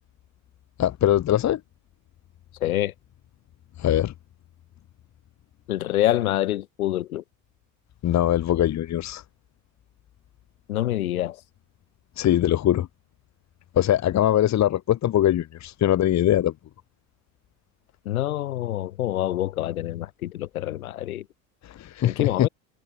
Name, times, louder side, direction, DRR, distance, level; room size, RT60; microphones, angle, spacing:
voice 1, 0.8-1.6 3.8-4.1 8.0-9.2 12.2-12.9 13.8-16.5 21.8-22.5, left 12 dB, 40° left, 2.3 m, -21 dB
voice 2, 2.6-2.9 5.7-7.2 10.7-11.4 18.1-21.2 22.0-22.5, left 14 dB, 85° left, 6.2 m, -26 dB
hypercardioid pair, 90°, 41 cm